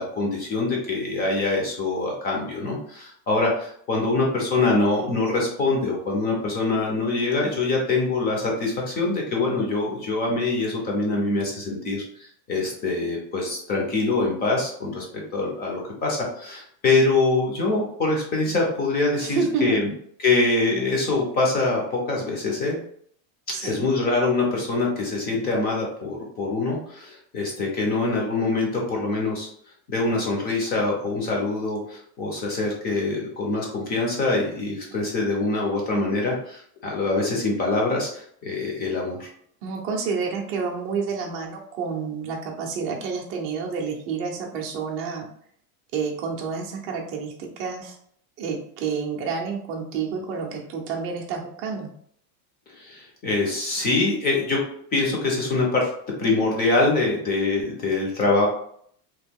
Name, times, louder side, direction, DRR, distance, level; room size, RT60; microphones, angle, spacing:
voice 1, 0.0-19.9 20.2-22.8 23.5-29.5 29.9-39.3 52.7-54.6 54.9-55.9 56.2-58.5, left 3 dB, 20° left, -1 dB, 0.5 m, -24 dB
voice 2, 19.2-19.8 23.5-23.8 39.6-45.3 45.9-47.9 48.4-51.9, right 5 dB, 30° right, 0 dB, 0.5 m, -29 dB
3.0 x 2.2 x 3.5 m, 0.64 s
supercardioid pair, 160°, 48 cm